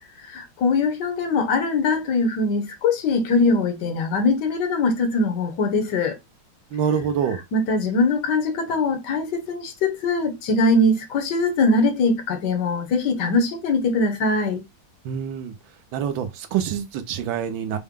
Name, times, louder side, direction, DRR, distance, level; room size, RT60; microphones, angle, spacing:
voice 1, 0.2-6.2 7.5-14.6, left 3 dB, 60° left, 1.3 m, -22 dB
voice 2, 6.7-7.4 15.0-15.5 15.9-17.8, right 8 dB, 75° right, 1.4 m, -26 dB
4.7 x 2.2 x 3.5 m
omnidirectional pair, 2.3 m